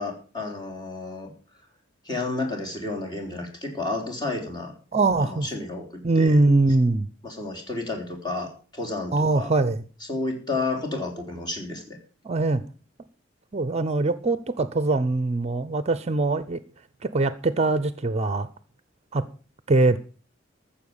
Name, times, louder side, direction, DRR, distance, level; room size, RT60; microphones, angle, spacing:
voice 1, 0.0-1.3 2.0-4.7 5.2-6.4 7.2-9.5 10.1-12.0, left 2 dB, 25° left, 4.0 m, -31 dB
voice 2, 4.9-5.5 6.0-7.1 9.1-9.8 12.2-12.6 13.5-16.6 17.0-18.5 19.1-19.2 19.7-20.0, right 2 dB, 35° right, 0.7 m, -22 dB
14.5 x 7.1 x 7.1 m
head